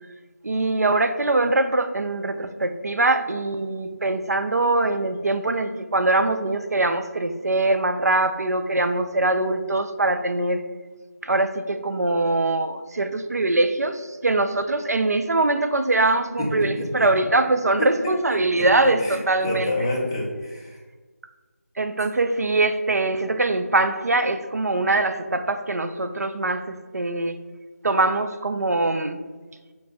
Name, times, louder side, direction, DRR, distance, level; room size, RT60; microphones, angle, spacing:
voice 1, 0.4-10.6 11.2-19.7 21.8-27.4 27.8-29.2, right 2 dB, 80° right, 9 dB, 0.4 m, -22 dB
voice 2, 16.7-17.1 17.8-17.9 18.6-18.7 19.0-19.2 19.4-20.8, left 1 dB, 20° left, -4 dB, 0.6 m, -28 dB
5.2 x 2.6 x 3.4 m, 1.4 s
figure-of-eight pair, 170°, 9 cm